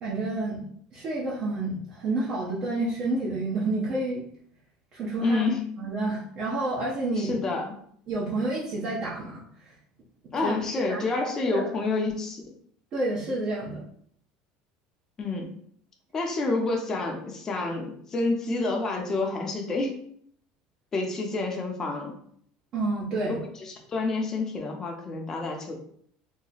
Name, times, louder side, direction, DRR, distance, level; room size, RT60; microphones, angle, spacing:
voice 1, 0.0-0.6 0.9-4.2 4.9-5.5 5.8-7.4 8.1-9.7 10.4-10.5 10.8-11.7 12.9-13.8 22.7-23.4, right 2 dB, 40° right, -6 dB, 0.8 m, -29 dB
voice 2, 5.2-5.7 7.2-7.7 10.3-12.4 15.2-15.5 16.1-20.0 20.9-22.2 23.2-25.7, left 3 dB, 20° left, 1 dB, 0.7 m, -28 dB
3.0 x 2.1 x 3.9 m, 0.63 s
cardioid pair, 150°, 2 cm